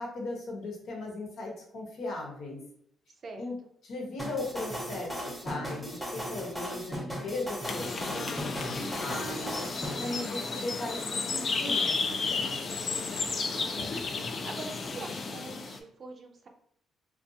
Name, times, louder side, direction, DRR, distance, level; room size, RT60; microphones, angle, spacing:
voice 1, 0.0-2.6 3.4-3.5 3.8-12.9, left 2 dB, 75° left, -1 dB, 0.9 m, -38 dB
sound 1, 4.2-9.9, equal, ahead, 0.7 m, -37 dB
sound 2, 7.6-15.8, left 4 dB, 45° left, 0.3 m, -33 dB
voice 2, 13.5-13.9 14.5-16.5, right 3 dB, 45° right, 3 dB, 0.5 m, -43 dB
2.5 x 2.3 x 2.7 m, 0.67 s
cardioid pair, 90°, 0 cm